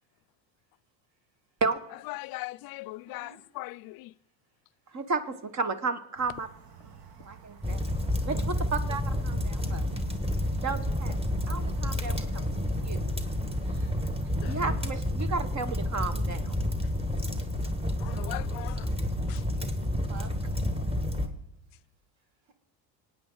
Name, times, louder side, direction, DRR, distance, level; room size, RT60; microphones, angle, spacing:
voice 1, 2.1-4.1 14.4-14.8 18.0-18.9 19.3-19.4, left 21 dB, 50° left, 0.5 m, -40 dB
voice 2, 3.1-3.4 13.6-14.0 17.6-18.4 22.5-22.6, right 3 dB, 85° right, 2.5 m, -57 dB
voice 3, 4.9-6.5 7.2-7.8 8.2-9.9 10.6-11.2 11.5-13.0 14.4-16.6 20.1-20.3, right 4 dB, 35° right, 1.3 m, -33 dB
sound 1, 6.2-14.7, right 7 dB, 50° right, 1.4 m, -49 dB
sound 2, 7.6-21.3, left 1 dB, 10° right, 1.5 m, -30 dB
24.5 x 9.1 x 3.9 m
supercardioid pair, 85°, 48 cm